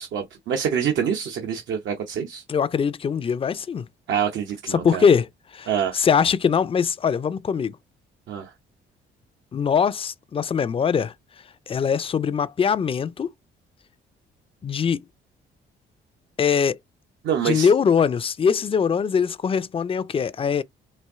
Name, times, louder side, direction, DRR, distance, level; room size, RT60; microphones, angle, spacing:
voice 1, 0.0-2.4 4.1-5.1 5.7-6.0 8.3-8.5 17.2-17.7, right 8 dB, 75° right, 0.9 m, -26 dB
voice 2, 2.5-3.9 4.7-5.2 5.5-5.7 5.9-7.8 9.5-11.1 11.7-13.3 14.6-15.0 16.4-16.8 17.4-20.6, left 6 dB, 30° left, 0.4 m, -22 dB
4.3 x 2.6 x 3.5 m
cardioid pair, 90°, 20 cm